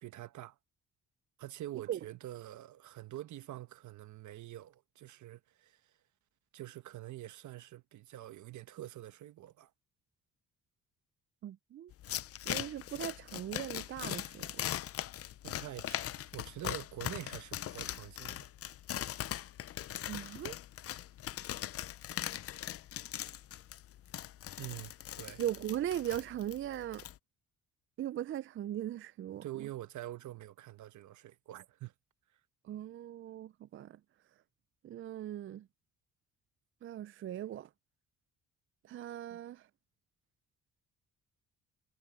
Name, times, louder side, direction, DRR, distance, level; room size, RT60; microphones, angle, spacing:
voice 1, 0.0-0.6 1.4-5.9 6.5-9.7 15.4-18.5 24.6-25.4 29.4-31.9 39.3-39.4, right 14 dB, 70° right, 1.2 m, -46 dB
voice 2, 11.4-11.9 12.5-14.5 20.1-20.6 25.4-27.0 28.0-29.7 32.6-34.0 34.8-35.7 36.8-37.7 38.8-39.7, right 11 dB, 45° right, 0.4 m, -39 dB
sound 1, 11.9-27.2, left 12 dB, 50° left, 0.5 m, -41 dB
cardioid pair, 90°, 30 cm